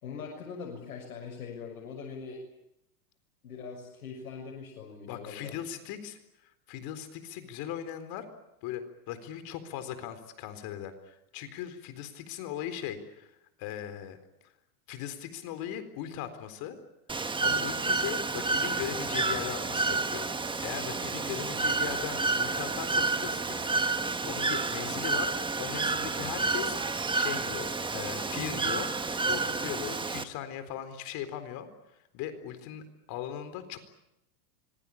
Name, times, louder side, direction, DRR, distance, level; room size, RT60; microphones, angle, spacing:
voice 1, 0.0-2.4 3.4-5.6, left 5 dB, 90° left, -1 dB, 6.8 m, -42 dB
voice 2, 5.1-8.2 8.6-13.3 13.6-14.2 14.9-16.8 17.4-20.3 20.6-25.3 25.6-26.8 27.1-28.9 29.2-31.7 32.1-33.8, left 10 dB, 50° left, 10 dB, 4.2 m, -39 dB
Bird / Water, 17.1-30.2, right 3 dB, 10° right, 1.5 m, -30 dB
26.0 x 22.0 x 8.7 m, 0.84 s
supercardioid pair, 120°, 44 cm